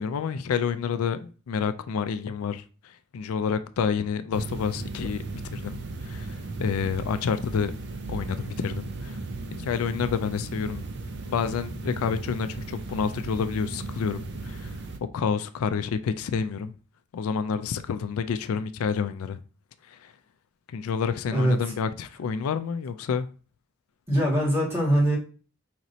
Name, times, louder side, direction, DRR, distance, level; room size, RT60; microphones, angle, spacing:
voice 1, 0.0-5.2 5.5-7.8 8.1-9.2 9.6-10.8 11.3-14.8 15.1-16.7 17.1-19.4 19.9-20.1 20.7-23.3, left 6 dB, 85° left, 0.4 m, -29 dB
sound 1, 4.3-15.0, right 3 dB, 55° right, 0.5 m, -36 dB
voice 2, 21.3-21.7 24.1-25.2, equal, 10° right, 2.0 m, -22 dB
5.0 x 3.0 x 2.7 m
head